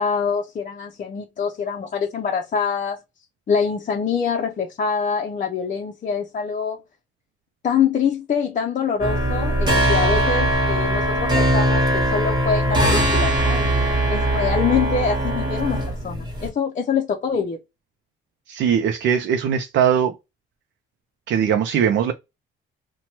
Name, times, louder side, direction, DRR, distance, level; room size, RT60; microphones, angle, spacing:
voice 1, 0.0-3.0 3.5-6.8 7.6-17.6, left 6 dB, 40° left, 0.6 m, -25 dB
sound 1, 9.0-16.5, right 1 dB, 20° right, 1.3 m, -20 dB
voice 2, 18.5-20.1 21.3-22.1, right 8 dB, 70° right, 0.5 m, -20 dB
2.9 x 2.2 x 2.8 m
cardioid pair, 90°, 20 cm